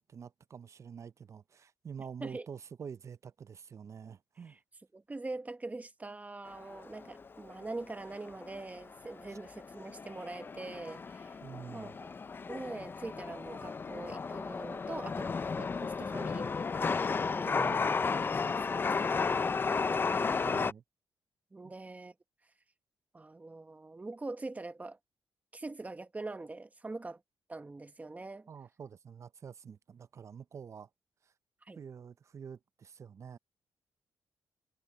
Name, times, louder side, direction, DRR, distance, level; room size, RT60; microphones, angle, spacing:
voice 1, 0.0-4.6 9.3-9.4 11.4-12.0 17.5-18.0 20.1-20.8 21.6-21.7 28.5-30.9 31.8-33.4, right 7 dB, 45° right, 0.5 m, -47 dB
voice 2, 4.9-11.4 11.7-12.1 12.5-15.3 15.6-17.1 17.4-20.3 21.5-22.1 23.1-25.0 25.5-27.2 27.5-28.5 31.6-31.8, right 2 dB, 20° right, 1.2 m, -43 dB
Chatter / Subway metro underground, 6.5-20.7, left 5 dB, 30° left, 0.4 m, -34 dB
cardioid pair, 90°, 7 cm